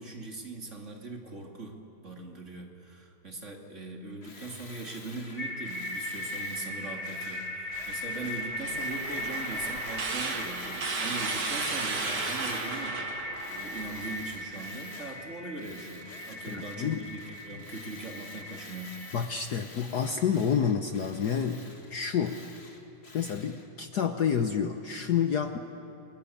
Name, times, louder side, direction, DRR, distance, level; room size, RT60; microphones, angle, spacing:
voice 1, 0.0-19.0, right 3 dB, 35° right, 2 dB, 2.6 m, -41 dB
Tools, 4.2-13.0 13.3-15.3 15.6-23.7, left 3 dB, 30° left, 2.2 m, -48 dB
sound 1, 4.9-19.2, left 1 dB, 85° left, 4.7 m, -39 dB
sound 2, 7.7-14.2, right 3 dB, 50° right, 2.6 m, -35 dB
voice 2, 16.5-17.0 19.1-21.6 21.9-22.4 23.1-25.6, left 7 dB, 55° left, 8 dB, 1.3 m, -29 dB
29.5 x 22.0 x 8.5 m, 2.9 s
omnidirectional pair, 2.4 m